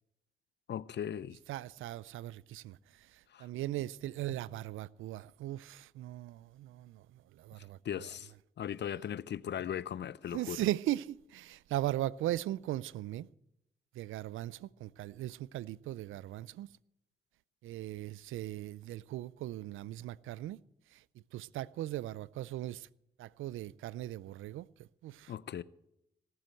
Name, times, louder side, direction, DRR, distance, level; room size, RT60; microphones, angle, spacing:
voice 1, 0.7-1.4 3.3-3.5 7.8-8.3 8.6-10.6 25.3-25.6, left 9 dB, 60° left, 0.6 m, -38 dB
voice 2, 1.5-2.8 3.4-7.0 7.4-8.1 10.3-13.3 14.0-16.7 17.6-20.6 21.3-22.9 23.2-24.7 25.0-25.3, right 14 dB, 80° right, 0.4 m, -38 dB
17.5 x 7.8 x 7.8 m
supercardioid pair, 45°, 20 cm